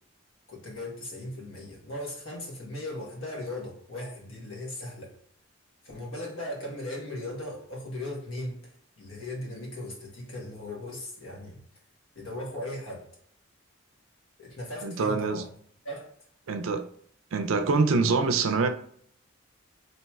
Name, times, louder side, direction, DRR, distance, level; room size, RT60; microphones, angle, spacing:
voice 1, 0.5-5.1 5.8-11.6 12.1-13.1 14.4-15.5 15.8-16.1, left 1 dB, 75° left, 1.2 m, -38 dB
voice 2, 14.8-15.4 16.5-16.9 17.3-18.7, right 4 dB, 75° right, 0.4 m, -25 dB
4.2 x 2.8 x 2.3 m
head